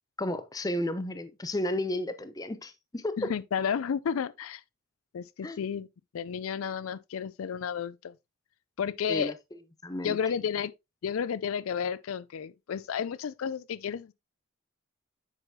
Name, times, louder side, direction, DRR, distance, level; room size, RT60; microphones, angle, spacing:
voice 1, 0.2-3.3 5.4-5.6 9.1-9.3 9.8-10.2, left 1 dB, 15° left, 0.5 m, -32 dB
voice 2, 3.2-4.6 5.1-5.9 6.1-8.1 8.8-9.3 10.0-10.7 11.0-14.1, left 7 dB, 80° left, 0.4 m, -32 dB
8.0 x 5.7 x 2.7 m
head